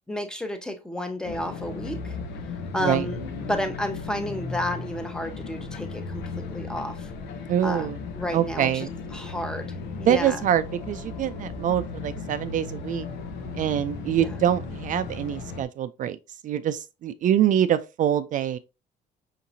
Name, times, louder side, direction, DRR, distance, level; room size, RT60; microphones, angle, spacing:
voice 1, 0.1-2.2 2.7-7.1 7.6-7.9 8.2-9.7 10.0-10.4 14.2-14.4, left 1 dB, 5° left, 0.8 m, -31 dB
sound 1, 1.2-15.6, left 4 dB, 90° left, 0.7 m, -36 dB
voice 2, 7.5-8.0 8.3-8.9 10.0-13.1 13.5-16.2 16.4-18.6, right 10 dB, 50° right, 0.4 m, -25 dB
5.7 x 2.8 x 2.6 m
cardioid pair, 110°, 17 cm